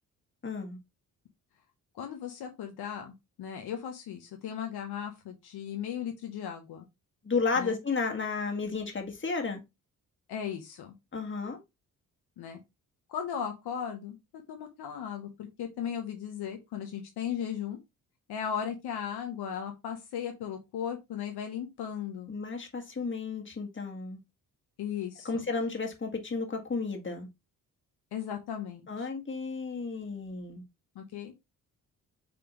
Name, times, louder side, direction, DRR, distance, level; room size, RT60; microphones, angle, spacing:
voice 1, 0.4-0.8 7.2-9.6 11.1-11.6 22.3-24.2 25.3-27.3 28.9-30.6, left 4 dB, 30° left, 1.7 m, -33 dB
voice 2, 1.9-6.8 7.6-7.8 10.3-10.9 12.4-12.6 13.1-14.2 14.5-17.8 18.3-22.3 24.8-25.4 28.1-29.1 30.9-31.3, left 8 dB, 70° left, 1.0 m, -36 dB
5.1 x 3.4 x 3.0 m
supercardioid pair, 50°, 40 cm